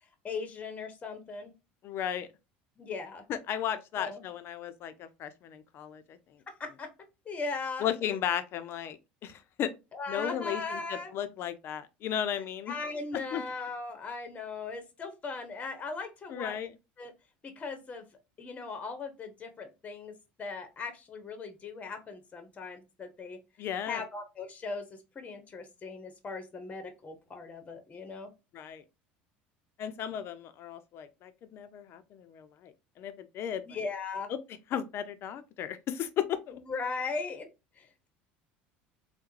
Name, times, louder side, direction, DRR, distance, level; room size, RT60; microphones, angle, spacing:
voice 1, 0.2-1.5 2.8-3.2 4.0-4.2 6.6-6.9 7.2-8.2 9.9-11.1 12.3-16.6 17.0-17.1 17.4-18.0 18.4-23.4 23.8-28.3 33.7-34.3 36.5-37.5 37.8-38.1, left 4 dB, 25° left, 0.9 m, -38 dB
voice 2, 1.8-2.3 3.3-6.2 7.8-9.0 9.2-9.7 10.1-12.7 13.3-13.4 16.3-16.7 23.6-24.0 28.5-28.8 29.8-33.6 34.7-36.6, left 9 dB, 50° left, 0.5 m, -35 dB
3.4 x 2.1 x 3.1 m
supercardioid pair, 90°, 5 cm